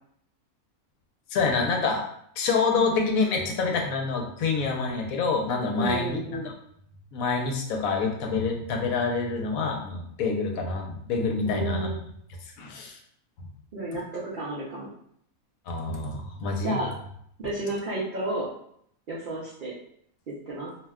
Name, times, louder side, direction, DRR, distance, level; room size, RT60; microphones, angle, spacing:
voice 1, 1.3-2.0 2.4-6.5 7.1-12.0 12.6-13.0 15.7-16.8, left 4 dB, 80° left, 1 dB, 1.0 m, -27 dB
voice 2, 5.7-6.5 11.4-12.0 13.7-14.9 16.6-16.9 17.4-18.5 19.1-19.7 20.3-20.7, right 2 dB, 75° right, -6 dB, 0.4 m, -32 dB
2.6 x 2.1 x 3.5 m, 0.69 s
omnidirectional pair, 1.5 m